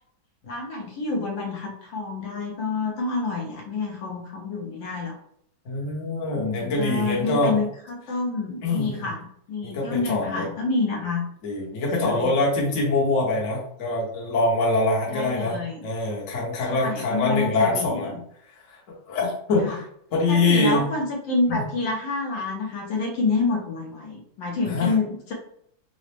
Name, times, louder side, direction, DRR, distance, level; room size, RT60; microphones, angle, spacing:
voice 1, 0.4-5.2 6.3-11.2 12.0-12.3 15.1-15.9 16.7-18.2 19.6-19.8 20.3-25.3, left 3 dB, 70° left, 0 dB, 1.4 m, -28 dB
voice 2, 5.6-7.5 8.6-9.0 9.6-10.5 11.4-18.1 18.5-18.8 19.1-19.8 20.1-20.8 21.5-21.6 24.6-24.9, left 2 dB, 50° left, -3 dB, 1.0 m, -24 dB
3.9 x 2.0 x 3.2 m, 0.68 s
omnidirectional pair, 2.2 m